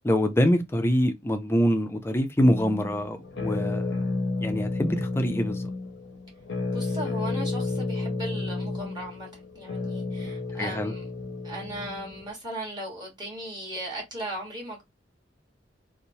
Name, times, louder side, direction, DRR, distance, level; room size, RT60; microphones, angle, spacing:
voice 1, 0.0-4.0 4.4-5.7 10.6-10.9, equal, 15° left, 0.4 m, -25 dB
sound 1, 2.4-12.3, left 3 dB, 85° left, 0.7 m, -31 dB
voice 2, 6.7-11.1 11.4-14.8, right 1 dB, 25° right, 1.2 m, -37 dB
3.0 x 2.0 x 2.7 m
head